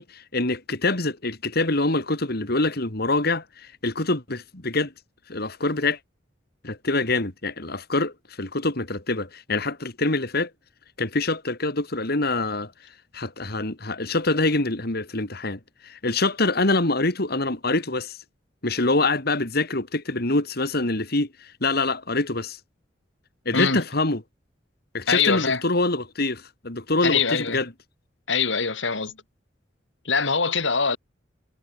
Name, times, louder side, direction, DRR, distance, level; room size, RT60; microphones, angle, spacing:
voice 1, 0.0-4.9 5.3-6.0 6.6-10.5 11.0-18.2 18.6-22.6 23.4-24.2 24.9-27.7, left 2 dB, 55° left, 3.2 m, -25 dB
voice 2, 25.1-25.6 27.0-27.6 28.3-29.2 30.0-31.0, left 5 dB, 90° left, 4.0 m, -23 dB
head